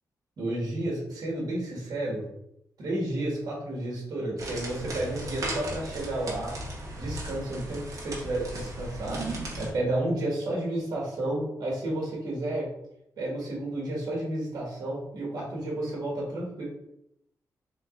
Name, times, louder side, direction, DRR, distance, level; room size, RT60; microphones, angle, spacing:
voice 1, 0.4-2.2 2.8-6.5 6.9-9.2 9.6-12.7 13.2-16.6, right 1 dB, 70° right, -3 dB, 1.7 m, -31 dB
sound 1, 4.4-9.7, right 1 dB, 55° right, 1.1 m, -36 dB
4.6 x 3.9 x 2.5 m, 0.78 s
cardioid pair, 105°, 7 cm